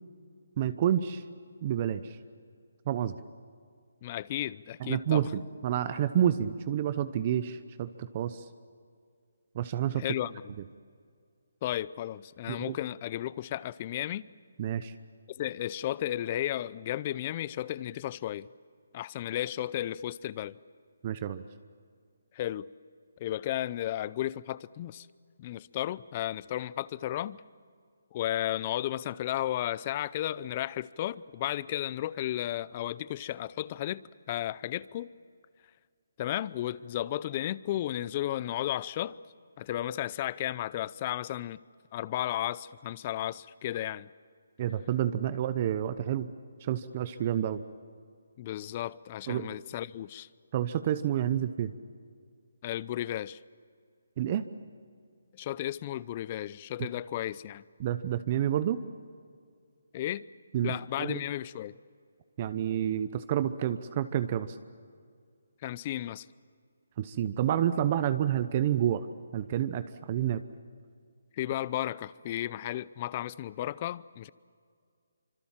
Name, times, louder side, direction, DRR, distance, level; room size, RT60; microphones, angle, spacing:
voice 1, 0.6-1.2 1.6-2.0 2.9-3.2 4.8-8.4 9.5-10.0 12.5-12.8 14.6-14.9 21.0-21.4 44.6-46.3 46.6-47.6 49.3-49.5 50.5-51.7 54.2-54.4 57.8-58.8 60.5-61.2 62.4-64.6 67.0-69.1 69.3-70.4, right 10 dB, 30° right, 12 dB, 0.9 m, -29 dB
voice 2, 4.0-5.3 10.0-10.4 11.6-14.3 15.3-18.5 18.9-20.6 22.3-22.6 23.2-25.1 25.4-27.4 28.1-35.1 36.2-39.2 39.6-41.6 41.9-44.1 48.4-50.3 52.6-53.4 55.3-57.6 59.9-60.2 60.6-61.7 65.6-66.3 71.4-74.3, left 13 dB, 30° left, 20 dB, 0.6 m, -34 dB
25.5 x 25.5 x 7.4 m, 2.2 s
hypercardioid pair, 160°, 0 cm